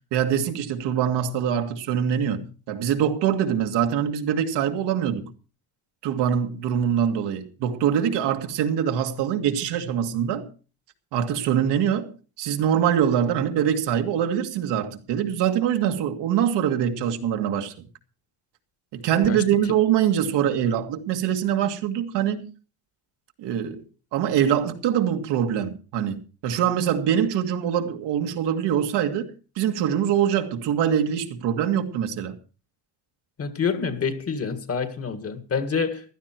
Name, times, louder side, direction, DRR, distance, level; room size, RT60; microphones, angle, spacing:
voice 1, 0.1-5.3 6.0-10.5 11.1-17.7 18.9-22.5 23.4-23.8 24.1-32.4, right 9 dB, 80° right, 2.0 m, -24 dB
voice 2, 33.4-36.0, left 6 dB, 35° left, 1.9 m, -27 dB
16.0 x 12.5 x 4.5 m
cardioid pair, 130°, 41 cm